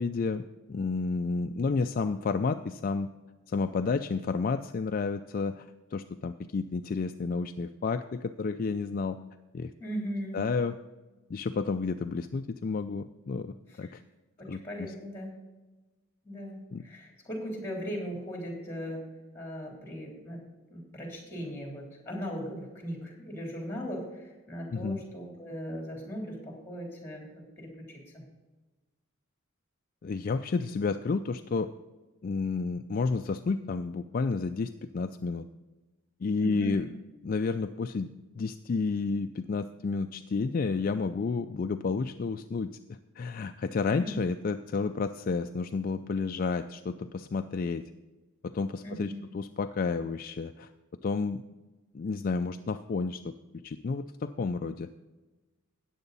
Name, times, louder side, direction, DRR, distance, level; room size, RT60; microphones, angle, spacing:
voice 1, 0.0-3.1 3.5-9.2 9.5-9.7 10.3-10.7 11.3-14.0 14.5-14.9 16.7-16.8 24.7-25.0 30.0-31.7 32.2-35.5 36.2-36.9 37.2-47.8 48.4-50.7 51.0-51.4 51.9-53.3 53.6-54.9, left 4 dB, 45° left, 8 dB, 0.3 m, -31 dB
voice 2, 9.8-10.4 13.7-13.9 14.4-15.3 16.2-19.0 19.3-20.4 20.7-28.2 36.4-36.7 44.0-44.1 48.8-49.2, equal, 10° left, 0 dB, 3.3 m, -38 dB
14.0 x 9.3 x 4.1 m, 1.2 s
head